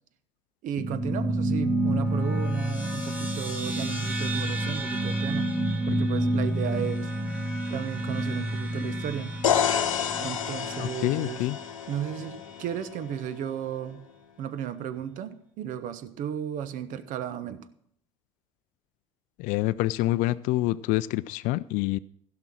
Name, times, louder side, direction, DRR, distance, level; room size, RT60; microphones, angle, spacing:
voice 1, 0.6-5.5 5.9-7.1 7.7-9.4 10.2-11.5 11.9-14.0 14.4-17.6, right 9 dB, 50° right, 13 dB, 1.1 m, -34 dB
sound 1, 0.8-11.5, right 1 dB, 10° right, 2.5 m, -29 dB
sound 2, 9.4-13.3, left 9 dB, 85° left, 0.8 m, -29 dB
voice 2, 10.8-11.6 19.4-22.0, left 17 dB, 55° left, 15 dB, 0.4 m, -27 dB
16.0 x 6.0 x 6.1 m, 0.64 s
hypercardioid pair, 70°, 17 cm